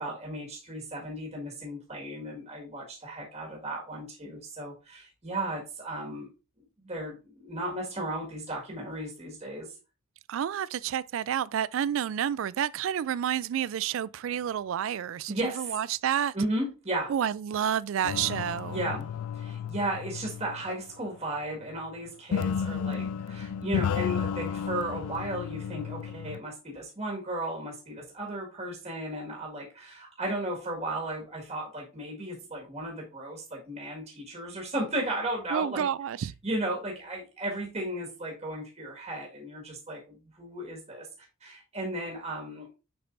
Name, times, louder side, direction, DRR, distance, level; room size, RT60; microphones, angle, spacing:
voice 1, 0.0-6.3 6.6-9.7 15.3-15.8 16.3-17.1 18.7-35.9 36.4-41.1 41.4-42.8, right 1 dB, 30° right, 1.8 m, -35 dB
voice 2, 10.3-16.3 17.1-18.8 35.5-36.3, right 9 dB, 65° right, 0.3 m, -29 dB
sound 1, 18.0-21.1 22.3-26.4, left 7 dB, 90° left, 0.3 m, -33 dB
6.9 x 5.4 x 2.6 m
head